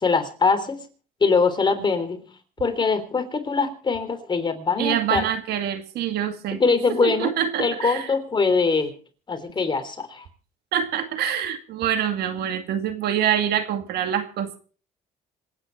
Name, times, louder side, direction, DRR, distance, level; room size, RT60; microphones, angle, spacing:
voice 1, 0.0-0.8 1.2-2.2 2.6-5.3 6.5-7.3 7.6-8.9 9.3-10.3, left 4 dB, 25° left, 7 dB, 3.4 m, -22 dB
voice 2, 4.8-6.6 6.9-8.1 10.7-14.6, right 9 dB, 75° right, 8 dB, 2.2 m, -25 dB
26.5 x 9.8 x 4.6 m, 0.40 s
cardioid pair, 110°, 17 cm